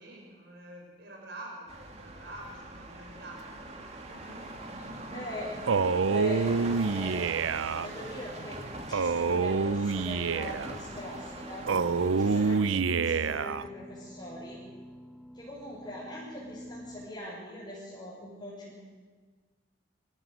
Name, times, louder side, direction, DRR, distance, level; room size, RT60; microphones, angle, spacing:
voice 1, 0.0-4.1 4.6-4.9, right 1 dB, 55° right, 0 dB, 5.8 m, -47 dB
sound 1, 1.7-12.6, right 2 dB, 35° right, 2.6 m, -42 dB
voice 2, 4.0-7.2 7.8-8.6 8.9-14.6 15.3-18.8, left 1 dB, 25° left, -7 dB, 6.1 m, -42 dB
Male speech man speaking, 5.7-7.9 8.9-10.7 11.7-13.7, right 4 dB, 85° right, 0.6 m, -27 dB
sound 2, 10.5-17.1, equal, 5° right, 2.6 m, -48 dB
26.0 x 15.5 x 7.9 m, 1.5 s
head